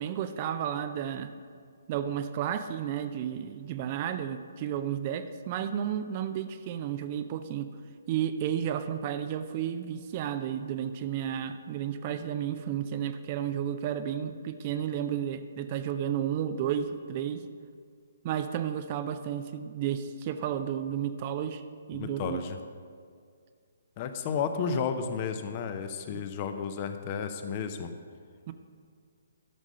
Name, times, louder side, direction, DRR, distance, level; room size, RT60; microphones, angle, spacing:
voice 1, 0.0-1.3 1.9-7.7 8.1-17.4 18.2-21.6 21.9-22.4 26.1-26.2 28.5-28.6, right 9 dB, 30° right, 9 dB, 0.4 m, -32 dB
voice 2, 21.9-22.6 24.0-27.9, left 6 dB, 30° left, 8 dB, 0.7 m, -32 dB
12.0 x 6.1 x 5.5 m, 2.1 s
figure-of-eight pair, 130°, 0 cm